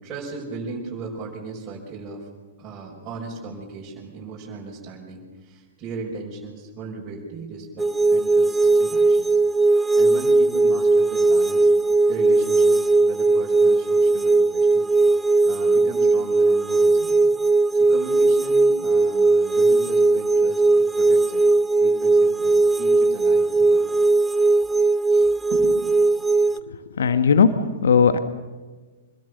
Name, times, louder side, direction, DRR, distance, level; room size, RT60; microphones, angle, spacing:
voice 1, 0.0-2.3 2.6-9.4 9.7-11.7 12.1-14.9 15.4-17.3 17.7-21.5 21.8-24.0 25.1-25.9, right 4 dB, 25° right, -5 dB, 5.5 m, -37 dB
sound 1, 7.8-26.6, right 3 dB, 5° right, 0.8 m, -18 dB
voice 2, 26.5-27.5 27.8-28.2, left 6 dB, 65° left, 10 dB, 1.4 m, -18 dB
26.0 x 21.5 x 6.9 m, 1.3 s
figure-of-eight pair, 105°, 0 cm